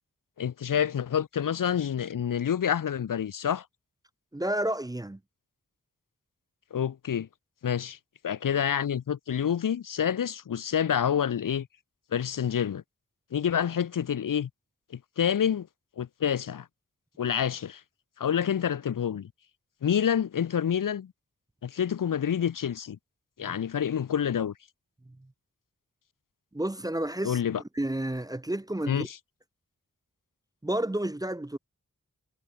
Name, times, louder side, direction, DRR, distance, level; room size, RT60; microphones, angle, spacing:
voice 1, 0.4-3.6 6.7-7.3 7.6-8.0 8.2-11.7 12.1-12.8 13.3-14.5 14.9-15.7 16.0-16.7 17.2-17.8 18.2-19.3 19.8-21.1 21.6-23.0 23.4-24.5 27.2-27.6 28.9-29.2, left 8 dB, 75° left, 0.8 m, -28 dB
voice 2, 4.3-5.2 23.4-23.5 25.1-25.2 26.5-27.4 27.8-29.1 30.6-31.6, right 1 dB, 10° right, 0.6 m, -31 dB
wide cardioid pair, 85°, 32 cm